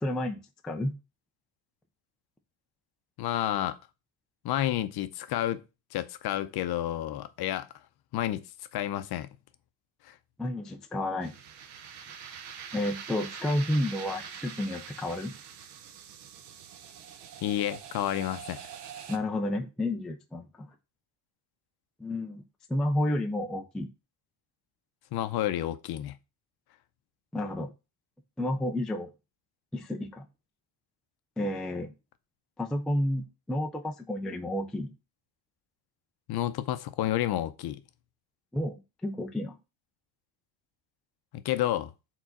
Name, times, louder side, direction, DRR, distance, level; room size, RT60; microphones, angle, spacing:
voice 1, 0.0-0.9 10.4-11.3 12.7-15.3 19.1-20.7 22.0-22.4 22.7-23.9 27.3-27.7 28.4-29.1 29.7-30.2 31.4-31.9 32.6-34.9 38.5-38.8 39.0-39.6, left 1 dB, ahead, 0.3 m, -31 dB
voice 2, 3.2-3.8 4.4-5.6 5.9-7.7 8.1-8.4 8.7-9.3 10.0-10.1 17.4-18.6 25.1-26.2 36.3-37.8 41.3-41.9, left 12 dB, 50° left, 0.7 m, -30 dB
sound 1, 11.2-19.2, right 7 dB, 55° right, 0.9 m, -44 dB
4.7 x 3.9 x 5.8 m
cardioid pair, 145°, 48 cm